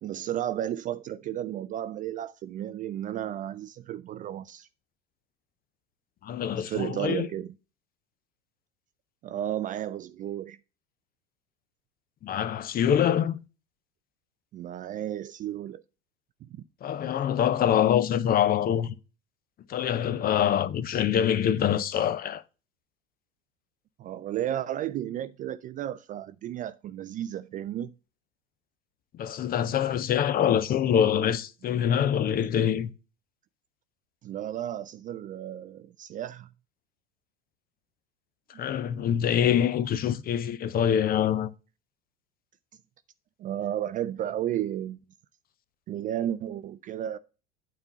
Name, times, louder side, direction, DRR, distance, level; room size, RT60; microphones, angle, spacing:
voice 1, 0.0-4.7 6.6-7.5 9.2-10.6 14.5-15.8 24.0-27.9 31.6-31.9 34.2-36.5 38.5-38.6 43.4-45.0 45.9-47.2, right 11 dB, 25° right, 0.3 m, -33 dB
voice 2, 6.2-7.3 12.2-13.4 16.8-18.9 19.7-22.4 29.2-32.9 38.6-41.5, left 9 dB, 30° left, 0.6 m, -25 dB
8.8 x 4.2 x 5.6 m
hypercardioid pair, 80°, 31 cm